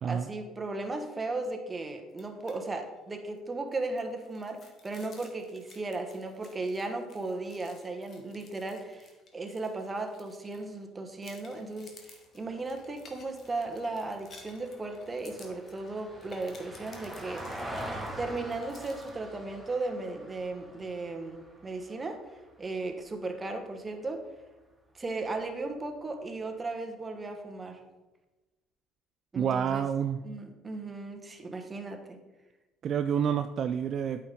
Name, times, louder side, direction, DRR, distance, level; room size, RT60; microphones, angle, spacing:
voice 1, 0.0-17.8 18.2-24.3 24.9-27.8 29.3-29.8 30.2-32.2, right 2 dB, 25° right, 5 dB, 1.3 m, -36 dB
sound 1, 2.1-2.6 2.9-3.0 3.4-10.8 11.2-19.1, left 4 dB, 50° left, 1.6 m, -56 dB
Vehicle, 12.4-22.8 25.1-25.2, right 1 dB, 5° right, 2.5 m, -44 dB
voice 2, 29.3-30.2 32.8-34.2, right 8 dB, 50° right, 9 dB, 0.3 m, -28 dB
8.5 x 5.9 x 3.9 m, 1.1 s
supercardioid pair, 80°, 0 cm